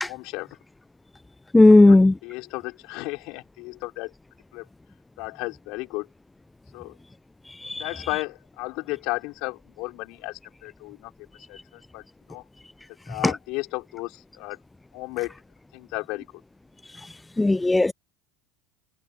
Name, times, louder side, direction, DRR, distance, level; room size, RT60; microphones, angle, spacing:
voice 1, 0.1-0.5 1.7-4.1 4.5-4.7 5.2-6.1 6.7-7.0 7.8-11.1 11.5-12.4 13.1-14.6 14.9-15.4 15.7-16.3, left 24 dB, 65° left, 5.2 m, -34 dB
voice 2, 1.5-2.1 7.6-7.8 13.2-13.3 17.4-17.9, left 2 dB, 10° left, 0.4 m, -15 dB
hypercardioid pair, 85°, 0 cm